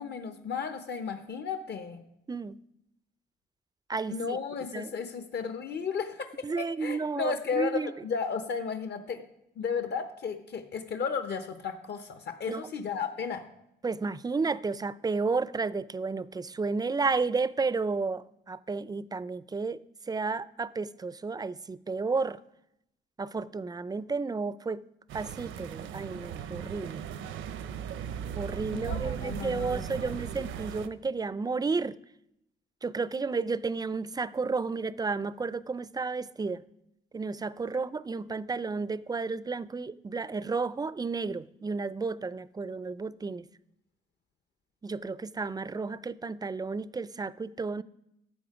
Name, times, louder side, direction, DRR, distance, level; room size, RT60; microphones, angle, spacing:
voice 1, 0.0-2.0 4.1-9.2 9.6-13.4 28.7-30.2, left 6 dB, 55° left, 1.1 m, -34 dB
voice 2, 6.4-7.9 12.5-12.7 13.8-19.8 20.1-22.4 23.2-24.8 25.1-27.0 28.4-32.0 32.8-36.6 37.1-43.5 44.8-47.8, right 4 dB, 20° right, 0.4 m, -32 dB
sound 1, 25.1-30.9, right 9 dB, 80° right, 0.8 m, -37 dB
13.0 x 7.5 x 4.9 m
cardioid pair, 90°, 20 cm